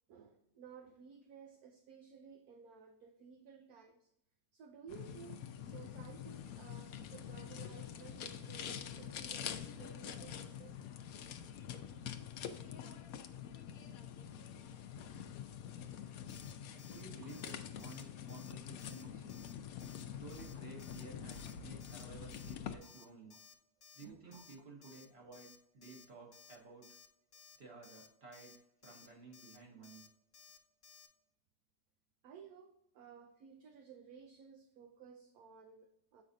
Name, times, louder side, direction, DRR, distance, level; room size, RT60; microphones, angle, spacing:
voice 1, 0.1-4.1 4.5-10.7 21.3-21.4 22.8-23.4 24.0-24.5 24.8-24.9 29.1-29.2 32.2-36.2, right 7 dB, 70° right, 5 dB, 1.1 m, -56 dB
sound 1, 4.9-22.8, left 8 dB, 65° left, 1.0 m, -46 dB
Alarm, 16.3-16.5 16.8-17.0 17.3-17.5 17.8-18.0 18.3-18.5 18.8-19.0 19.3-19.5 19.8-20.0 20.3-20.5 20.8-21.0 21.3-21.5 21.8-22.0 22.3-22.5 22.8-23.0 23.3-23.5 23.8-24.0 24.3-24.6 24.8-25.1 25.3-25.6 25.8-26.1 26.3-26.6 26.8-27.1 27.3-27.6 27.8-28.1 28.3-28.6 28.8-29.1 29.3-29.6 29.8-30.1 30.3-30.6 30.8-31.1, left 7 dB, 50° left, 1.3 m, -59 dB
voice 2, 16.7-19.3 20.1-23.4 23.9-27.0 27.6-28.6 28.8-30.0, right 4 dB, 35° right, -1 dB, 1.8 m, -54 dB
8.0 x 5.4 x 2.6 m, 0.79 s
omnidirectional pair, 1.8 m